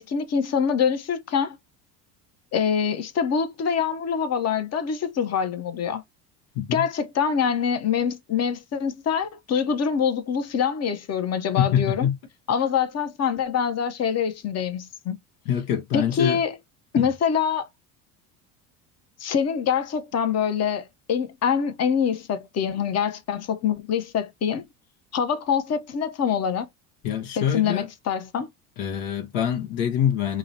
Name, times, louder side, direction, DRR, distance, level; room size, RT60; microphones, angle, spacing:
voice 1, 0.0-1.6 2.5-6.0 6.7-12.1 12.5-15.2 15.9-16.6 16.9-17.7 19.2-24.7 25.1-26.7 27.4-28.5, left 7 dB, 35° left, 0.8 m, -25 dB
voice 2, 11.6-12.1 15.5-16.4 17.0-17.1 27.0-27.9 28.8-30.4, left 9 dB, 70° left, 1.0 m, -25 dB
5.8 x 2.1 x 2.7 m
hypercardioid pair, 80°, 46 cm